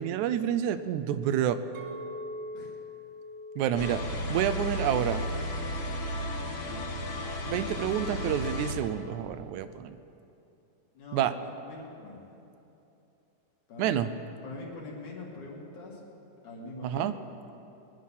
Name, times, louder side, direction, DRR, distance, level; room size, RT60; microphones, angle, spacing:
voice 1, 0.0-1.6 3.6-5.2 7.5-10.0 11.1-11.3 13.8-14.1 16.8-17.2, right 10 dB, 85° right, 11 dB, 2.1 m, -28 dB
Chink clink, 1.7-6.1 6.6-6.9, left 1 dB, 65° right, 2.0 m, -44 dB
sound 1, 3.8-8.8, equal, 50° left, 2.1 m, -33 dB
voice 2, 11.0-12.2 13.7-14.2 14.4-16.0 16.4-17.2, left 3 dB, 80° left, -3 dB, 3.8 m, -43 dB
21.5 x 10.0 x 5.6 m, 2.8 s
omnidirectional pair, 3.4 m